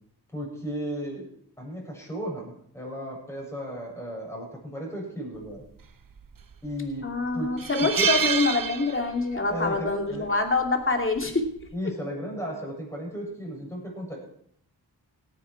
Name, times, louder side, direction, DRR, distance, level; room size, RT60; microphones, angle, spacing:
voice 1, 0.3-1.3 1.6-5.6 6.6-7.1 7.3-7.5 7.8-8.1 9.5-10.3 11.7-14.2, equal, 5° left, -2 dB, 7.6 m, -34 dB
sound 1, 6.2-6.7 7.1-7.2 7.6-9.4 9.7-9.9 11.2-11.5, right 6 dB, 50° right, 1.0 m, -27 dB
voice 2, 7.0-11.5, left 3 dB, 30° left, 3 dB, 2.7 m, -25 dB
17.5 x 10.0 x 4.7 m, 0.66 s
wide cardioid pair, 75°, 42 cm